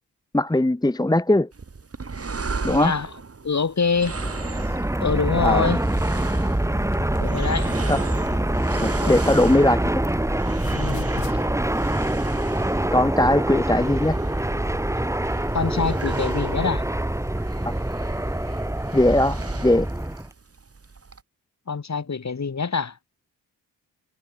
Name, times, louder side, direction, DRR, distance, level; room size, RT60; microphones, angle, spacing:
voice 1, 0.3-1.5 2.6-2.9 5.4-5.7 7.9-8.0 8.7-10.0 12.9-14.2 18.9-19.9, left 1 dB, 10° left, 1.2 m, -20 dB
sound 1, 1.5-21.2, right 4 dB, 30° right, 3.5 m, -38 dB
voice 2, 2.7-3.1 3.4-4.2 5.0-5.8 7.2-7.7 9.0-9.1 10.7-11.1 15.5-16.8 21.7-23.0, left 5 dB, 40° left, 3.6 m, -25 dB
Fixed-wing aircraft airplane, 3.9-20.3, right 1 dB, 5° right, 1.9 m, -25 dB
sound 2, 6.8-10.2 10.5-11.4, left 14 dB, 90° left, 5.6 m, -43 dB
cardioid pair, 65°, 44 cm